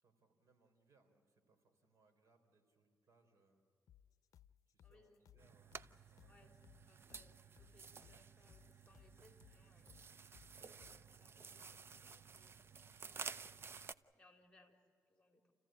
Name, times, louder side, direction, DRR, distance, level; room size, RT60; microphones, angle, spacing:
voice 1, 0.0-3.6 4.7-5.8 6.1-6.6 12.7-12.9, right 4 dB, 60° right, 5 dB, 3.6 m, -74 dB
sound 1, 3.9-11.1, left 10 dB, 70° left, 0.6 m, -66 dB
voice 2, 4.8-5.2 6.3-6.5 6.9-13.4 13.7-15.5, left 2 dB, 15° left, 4 dB, 3.0 m, -71 dB
sound 2, 5.4-13.9, right 5 dB, 45° right, 0.6 m, -53 dB
29.0 x 15.0 x 8.9 m, 2.3 s
cardioid pair, 110°, 6 cm